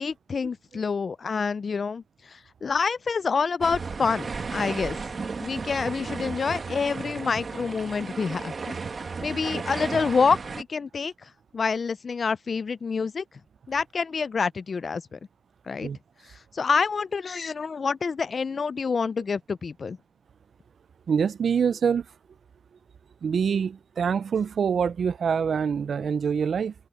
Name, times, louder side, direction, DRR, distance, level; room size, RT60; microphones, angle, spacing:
voice 1, 0.0-5.0 5.4-8.8 9.2-13.2 13.7-15.2 15.7-15.9 16.3-20.0, left 5 dB, 45° left, 0.3 m, -27 dB
sound 1, 3.6-10.6, right 4 dB, 40° right, 1.5 m, -34 dB
voice 2, 21.1-22.1 23.2-26.7, right 6 dB, 65° right, 0.3 m, -25 dB
wide cardioid pair, 145°, 0 cm